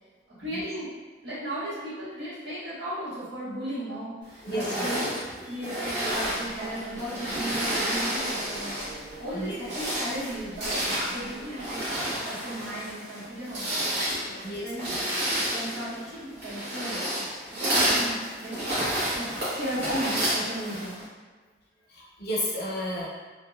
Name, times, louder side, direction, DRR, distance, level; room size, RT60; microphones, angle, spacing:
voice 1, 0.4-0.9 1.2-11.8 12.1-13.9 14.3-14.9 15.5-17.2 17.6-18.6 19.1-19.3 19.6-21.0, right 1 dB, 85° right, -10 dB, 1.3 m, -36 dB
voice 2, 4.4-4.9 9.3-9.6 14.4-14.6 21.9-23.1, equal, 60° left, -4 dB, 0.7 m, -31 dB
sound 1, 4.5-9.1 9.5-21.0, right 1 dB, 65° right, 1.1 m, -30 dB
sound 2, 6.1-11.8, right 1 dB, 40° right, 0.4 m, -45 dB
2.8 x 2.6 x 2.3 m, 1.4 s
head